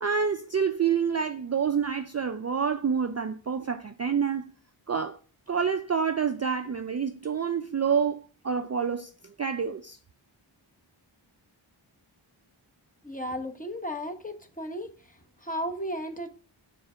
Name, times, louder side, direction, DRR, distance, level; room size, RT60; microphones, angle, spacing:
voice 1, 0.0-4.5 4.9-5.2 5.5-10.0, right 6 dB, 35° right, 0.4 m, -28 dB
voice 2, 13.0-14.9 15.4-16.3, equal, 15° left, 1.0 m, -34 dB
7.2 x 3.3 x 4.9 m
wide cardioid pair, 40°, 48 cm